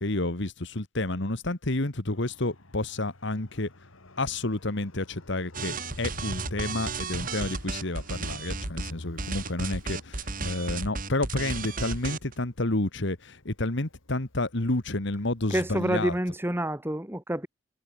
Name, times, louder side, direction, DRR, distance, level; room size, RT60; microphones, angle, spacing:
voice 1, 0.0-3.7 4.2-16.1, left 2 dB, 60° left, 1.8 m, -30 dB
Fixed-wing aircraft airplane, 2.1-15.6, left 1 dB, 85° left, 2.7 m, -48 dB
sound 1, 5.5-8.9 9.2-12.3, right 3 dB, 45° right, 2.3 m, -33 dB
voice 2, 15.5-17.5, right 1 dB, 10° right, 1.5 m, -28 dB
head